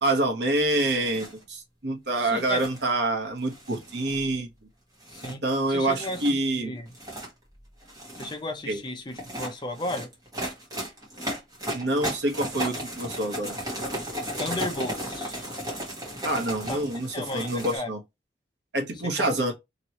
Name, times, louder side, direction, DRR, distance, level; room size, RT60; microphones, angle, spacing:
voice 1, 0.0-4.5 5.2-6.7 8.7-8.8 11.7-13.5 16.2-18.0 18.7-19.5, right 2 dB, 70° right, 1.0 m, -27 dB
sound 1, 0.9-1.4 2.3-2.8 3.5-4.3 5.0-5.3 5.9-6.3 6.9-7.3 7.8-8.4 9.1-17.8, equal, 20° right, 1.2 m, -35 dB
voice 2, 2.2-2.6 5.1-5.4 5.7-6.9 8.2-10.1 14.4-15.5 16.7-16.8 17.1-17.9 19.2-19.3, left 2 dB, 25° left, 0.6 m, -34 dB
3.0 x 2.9 x 2.9 m
head